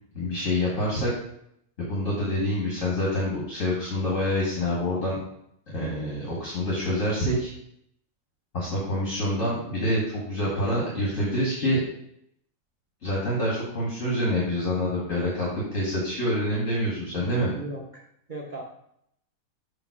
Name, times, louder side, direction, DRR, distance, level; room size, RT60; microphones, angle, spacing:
voice 1, 0.1-1.1 1.8-5.2 5.7-7.5 8.5-11.8 13.0-17.5, left 1 dB, 55° left, -5 dB, 2.2 m, -26 dB
voice 2, 17.1-18.0 18.3-18.6, right 1 dB, 40° right, -2 dB, 0.8 m, -37 dB
7.2 x 3.3 x 6.0 m, 0.73 s
omnidirectional pair, 1.7 m